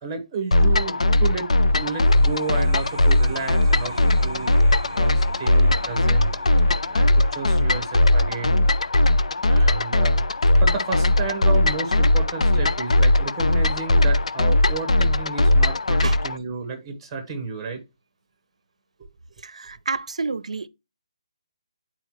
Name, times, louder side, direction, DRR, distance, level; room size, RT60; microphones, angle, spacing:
voice 1, 0.0-4.6 4.9-6.3 6.9-8.7 9.0-9.1 9.4-10.2 10.6-17.8, right 4 dB, 5° right, 1.0 m, -32 dB
sound 1, 0.5-16.4, left 1 dB, 85° left, 0.5 m, -19 dB
sound 2, 1.7-12.9, right 4 dB, 40° right, 0.6 m, -43 dB
voice 2, 19.4-20.7, right 4 dB, 85° right, 0.5 m, -29 dB
9.0 x 4.4 x 3.1 m
hypercardioid pair, 180°, 3 cm